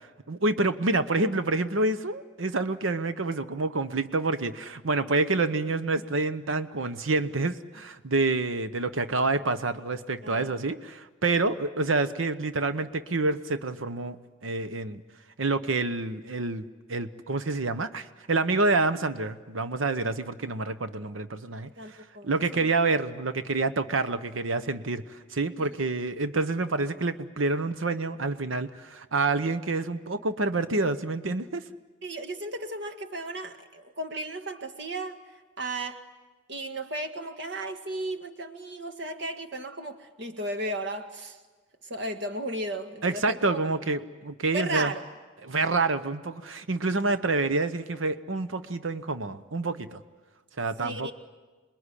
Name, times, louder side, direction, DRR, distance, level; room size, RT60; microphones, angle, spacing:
voice 1, 0.3-15.0 15.4-21.7 22.2-31.6 43.0-44.9 45.4-50.0 50.6-51.1, right 3 dB, 90° right, 11 dB, 1.0 m, -28 dB
voice 2, 10.2-10.5 21.8-22.7 25.6-25.7 32.0-35.2 35.6-36.0 36.5-41.4 41.8-43.6 44.5-45.0 50.8-51.1, right 1 dB, 60° right, 7 dB, 1.9 m, -35 dB
27.5 x 21.0 x 9.9 m, 1.3 s
head